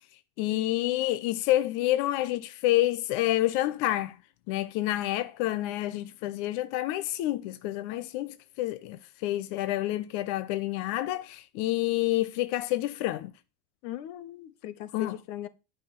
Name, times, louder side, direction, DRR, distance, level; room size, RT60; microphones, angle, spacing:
voice 1, 0.4-4.2 4.5-13.3 14.9-15.2, left 15 dB, 55° left, 1.0 m, -28 dB
voice 2, 13.8-15.5, left 12 dB, 85° left, 1.7 m, -39 dB
11.5 x 6.2 x 6.7 m
cardioid pair, 165°, 48 cm